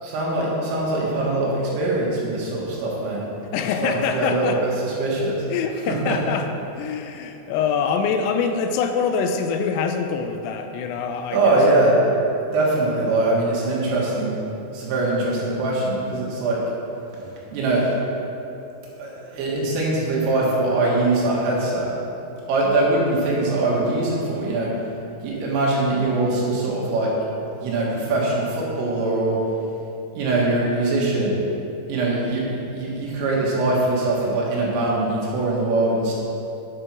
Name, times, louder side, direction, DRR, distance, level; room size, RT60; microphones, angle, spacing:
voice 1, 0.0-3.2 3.8-5.4 5.9-6.2 11.3-11.9 12.5-14.3 14.7-16.6 17.1-17.2 17.5-17.9 19.0-21.9 22.5-24.7 25.2-27.1 27.6-29.4 30.1-31.4 31.9-36.1, right 2 dB, 85° right, -4 dB, 4.4 m, -22 dB
voice 2, 3.5-4.6 5.5-6.5 6.8-11.6, left 6 dB, 85° left, 6 dB, 3.3 m, -24 dB
9.7 x 7.7 x 4.5 m, 2.9 s
omnidirectional pair, 5.8 m